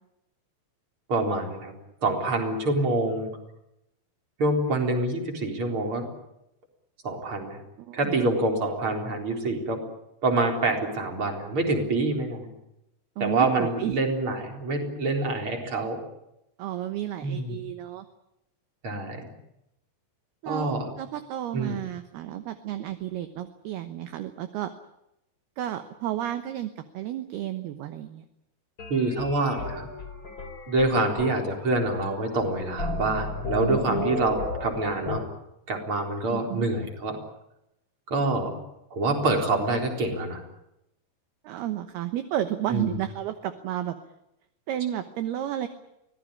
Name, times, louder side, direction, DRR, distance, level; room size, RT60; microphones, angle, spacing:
voice 1, 1.1-1.7 2.0-3.3 4.4-6.1 7.0-7.6 7.9-9.8 10.2-12.5 13.2-16.0 17.2-17.6 18.8-19.3 20.4-20.9 21.5-21.8 28.9-29.9 30.7-35.2 35.7-37.2 38.1-38.6 38.9-40.4 42.7-42.9, right 2 dB, 30° right, 3 dB, 4.4 m, -26 dB
voice 2, 7.8-8.2 13.2-14.0 16.6-18.1 20.4-24.7 25.6-28.2 33.6-34.1 36.3-36.7 41.4-44.0 44.7-45.7, right 12 dB, 70° right, 9 dB, 2.7 m, -32 dB
sound 1, 28.8-35.2, left 3 dB, 20° left, 3.8 m, -34 dB
24.5 x 18.0 x 9.9 m, 0.86 s
omnidirectional pair, 5.4 m